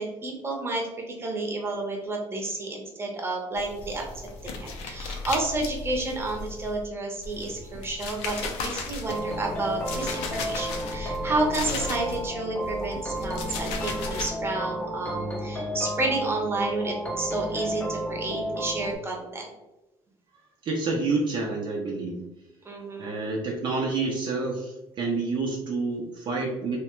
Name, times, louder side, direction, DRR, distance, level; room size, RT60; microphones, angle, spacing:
voice 1, 0.0-4.0 4.4-19.5 22.6-23.3, right 2 dB, 20° right, 0 dB, 0.8 m, -31 dB
sound 1, 3.6-6.9 7.2-12.3 12.6-14.3, left 3 dB, 85° left, 0.5 m, -36 dB
sound 2, 9.1-19.0, equal, 15° left, 0.6 m, -32 dB
voice 2, 20.6-22.2 23.0-26.8, right 3 dB, 50° right, -1 dB, 0.5 m, -28 dB
2.9 x 2.1 x 2.9 m, 0.98 s
cardioid pair, 100°, 10 cm